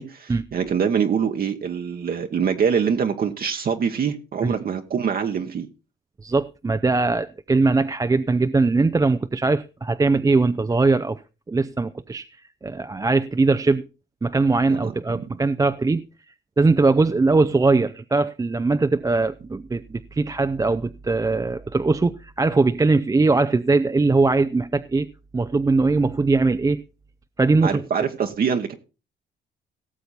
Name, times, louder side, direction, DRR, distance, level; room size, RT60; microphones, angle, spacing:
voice 1, 0.0-5.7 14.7-15.3 27.6-28.7, right 7 dB, 50° right, 1.0 m, -24 dB
voice 2, 6.2-11.2 11.5-12.3 12.6-13.9 14.2-16.0 16.6-25.1 25.3-26.8 27.4-27.8, right 3 dB, 15° right, 0.5 m, -20 dB
17.5 x 6.9 x 4.1 m
cardioid pair, 90°, 20 cm